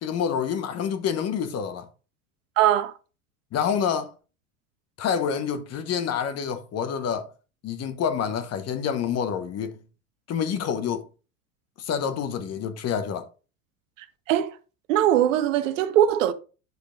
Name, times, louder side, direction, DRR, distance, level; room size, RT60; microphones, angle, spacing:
voice 1, 0.0-1.9 3.5-4.1 5.0-7.3 7.6-9.8 10.3-11.1 11.8-13.3, left 7 dB, 35° left, 1.2 m, -27 dB
voice 2, 2.6-2.9 14.3-14.6 14.9-16.3, right 11 dB, 60° right, 1.0 m, -21 dB
9.5 x 6.6 x 2.5 m
figure-of-eight pair, 75°, 42 cm